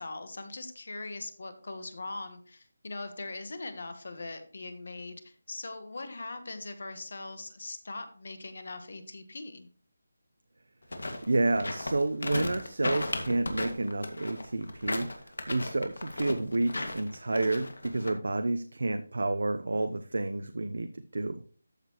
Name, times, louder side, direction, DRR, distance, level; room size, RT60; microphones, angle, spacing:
voice 1, 0.0-9.7, left 2 dB, 45° left, 9 dB, 1.3 m, -41 dB
sound 1, 10.8-18.1, left 2 dB, 85° left, 2.0 m, -35 dB
voice 2, 11.2-15.1 15.5-21.4, right 2 dB, 75° right, 8 dB, 0.7 m, -30 dB
13.5 x 6.6 x 3.1 m, 0.43 s
figure-of-eight pair, 180°, 0 cm